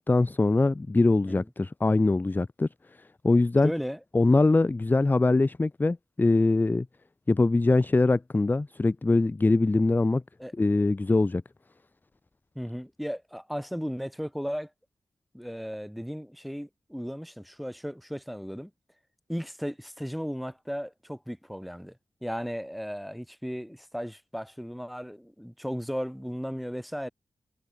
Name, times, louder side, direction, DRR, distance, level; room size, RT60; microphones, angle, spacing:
voice 1, 0.1-2.7 3.2-3.7 4.1-6.9 7.3-10.2 10.6-11.4, left 2 dB, 20° left, 0.6 m, -22 dB
voice 2, 3.6-4.0 10.4-10.5 12.5-14.7 15.3-18.7 19.3-27.1, equal, ahead, 2.4 m, -35 dB
wide cardioid pair, 135°, 9 cm